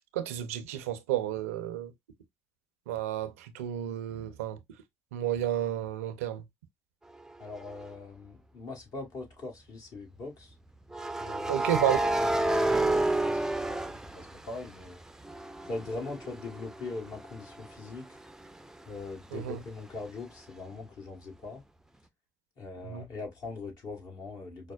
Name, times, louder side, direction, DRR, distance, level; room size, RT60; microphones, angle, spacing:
voice 1, 0.0-1.9 2.9-4.6 5.1-6.4 11.5-12.1 19.3-19.6 22.8-23.1, right 11 dB, 85° right, 0.4 m, -31 dB
voice 2, 7.4-10.5 11.2-12.3 12.7-15.0 15.6-18.1 18.8-21.6 22.6-24.7, left 3 dB, 60° left, 1.5 m, -41 dB
sound 1, 7.6-7.8 10.9-14.8 15.2-18.8, right 2 dB, 5° right, 0.4 m, -30 dB
5.0 x 2.1 x 2.3 m
hypercardioid pair, 55°, 7 cm